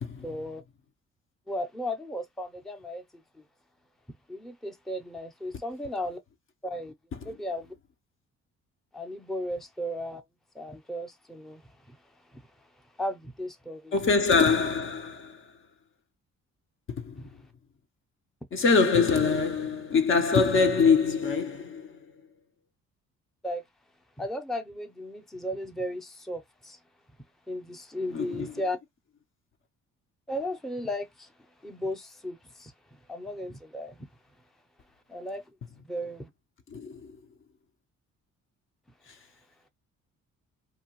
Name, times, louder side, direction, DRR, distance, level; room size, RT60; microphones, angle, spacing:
voice 1, 0.2-0.6 1.5-3.4 4.3-6.2 6.6-6.9 7.2-7.7 8.9-10.2 10.5-12.0 12.3-12.5 13.0-14.0 17.2-17.3 23.4-23.6 24.2-26.8 27.5-28.8 30.3-31.3 31.6-32.7 33.1-34.1 35.1-35.4 35.8-36.3, left 1 dB, ahead, 0.5 m, -35 dB
voice 2, 13.9-15.4 16.9-17.2 18.5-22.0 28.1-28.5 36.7-37.1, left 5 dB, 45° left, 0.6 m, -24 dB
2.8 x 2.2 x 2.9 m
cardioid pair, 90°, 30 cm